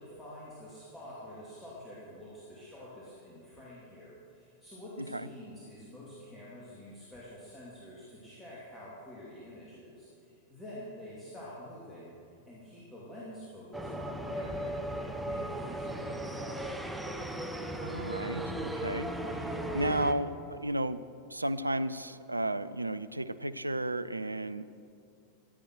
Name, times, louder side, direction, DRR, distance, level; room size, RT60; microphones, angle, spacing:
voice 1, 0.0-12.2 12.5-16.8, equal, 15° left, -8 dB, 2.9 m, -47 dB
voice 2, 5.0-5.3 17.8-19.1 19.4-21.0 21.3-24.6, right 1 dB, 85° right, 13 dB, 0.4 m, -33 dB
sound 1, 13.7-20.1, right 1 dB, 5° right, 1.0 m, -36 dB
15.0 x 9.1 x 6.3 m, 2.5 s
figure-of-eight pair, 90°, 0 cm